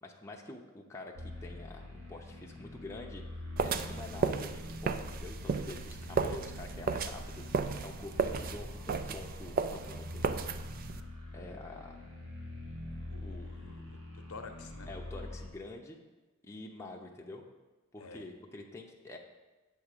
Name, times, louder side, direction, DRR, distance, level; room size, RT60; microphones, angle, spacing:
voice 1, 0.0-3.2 3.6-7.4 7.8-10.4 11.3-12.0 13.2-13.5 14.9-16.0 16.4-17.4 17.9-19.2, left 2 dB, 15° left, 0 dB, 0.6 m, -47 dB
sound 1, 1.1-15.5, left 2 dB, 60° right, 1.3 m, -45 dB
sound 2, 3.6-11.0, right 5 dB, 40° right, 0.3 m, -34 dB
voice 2, 13.0-14.9 18.0-18.3, left 4 dB, 75° left, 6 dB, 0.8 m, -49 dB
7.9 x 3.6 x 6.6 m, 1.2 s
head